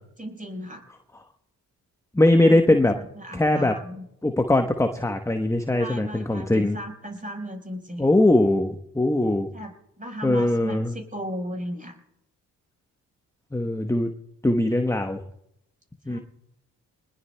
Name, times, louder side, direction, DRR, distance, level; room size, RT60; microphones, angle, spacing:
voice 1, 0.2-0.8 2.3-4.0 5.7-8.1 9.5-12.0 16.0-16.2, equal, 20° right, 3 dB, 4.8 m, -36 dB
voice 2, 2.1-2.9 3.3-3.7 4.2-6.8 8.0-9.5 10.2-10.9 13.5-14.1 14.4-15.2 16.1-16.2, left 1 dB, 5° left, 6 dB, 1.0 m, -21 dB
23.5 x 20.0 x 2.2 m, 0.82 s
hypercardioid pair, 40°, 41 cm